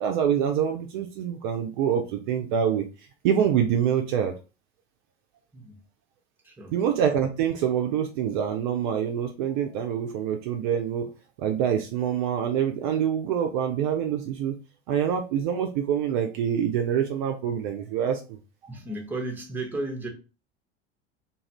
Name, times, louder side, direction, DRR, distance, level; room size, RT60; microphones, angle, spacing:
voice 1, 0.0-2.9 3.2-4.3 6.7-11.1 11.4-14.5 14.9-18.4, right 8 dB, 45° right, 0.4 m, -25 dB
voice 2, 6.4-6.8 18.7-20.1, right 2 dB, 5° right, 0.6 m, -34 dB
2.5 x 2.4 x 2.9 m
figure-of-eight pair, 75°, 33 cm